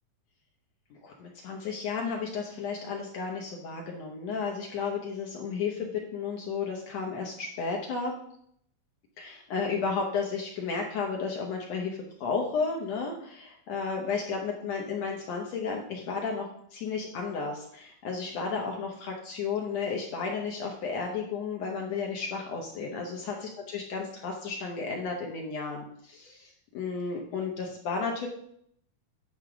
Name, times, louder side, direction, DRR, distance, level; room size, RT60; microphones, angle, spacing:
voice 1, 0.9-8.1 9.2-28.3, left 5 dB, 65° left, 0 dB, 1.8 m, -33 dB
9.7 x 3.6 x 5.9 m, 0.68 s
omnidirectional pair, 3.9 m